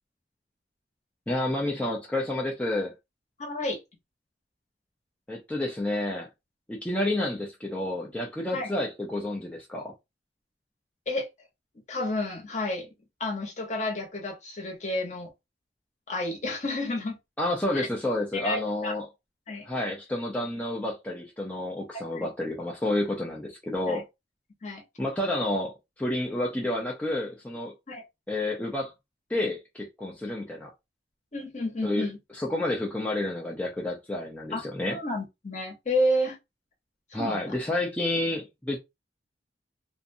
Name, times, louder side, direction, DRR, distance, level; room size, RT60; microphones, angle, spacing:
voice 1, 1.3-2.9 5.3-6.3 6.7-9.9 17.4-19.1 19.6-24.0 25.0-27.7 28.3-28.9 29.3-30.7 31.8-32.1 32.3-35.0 37.1-38.8, left 1 dB, 10° left, 0.5 m, -30 dB
voice 2, 3.4-3.8 8.5-8.7 11.1-11.3 11.9-12.9 13.2-15.3 16.1-17.2 17.7-17.9 18.3-18.9 19.5-19.6 21.9-22.3 23.9-24.0 24.6-24.8 27.9-28.0 31.3-32.2 34.5-34.6 34.9-36.4 37.1-37.5, left 1 dB, 40° left, 0.9 m, -30 dB
2.5 x 2.1 x 2.6 m
head